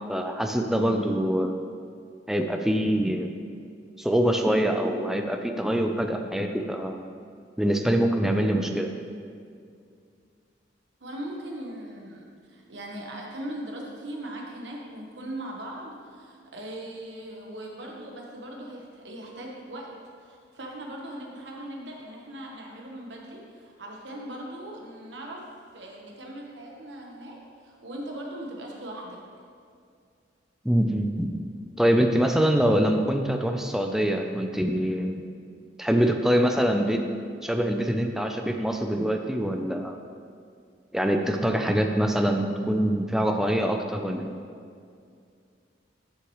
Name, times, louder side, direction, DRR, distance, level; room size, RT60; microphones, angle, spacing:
voice 1, 0.1-1.5 2.3-3.3 4.0-7.0 7.6-8.9 30.6-31.3 31.8-35.2 35.8-37.0 37.4-39.9 40.9-44.3, equal, ahead, 4 dB, 0.5 m, -24 dB
voice 2, 11.0-19.9 20.2-25.4 25.7-29.2, right 1 dB, 70° right, -1 dB, 1.2 m, -39 dB
11.5 x 6.2 x 3.1 m, 2.3 s
head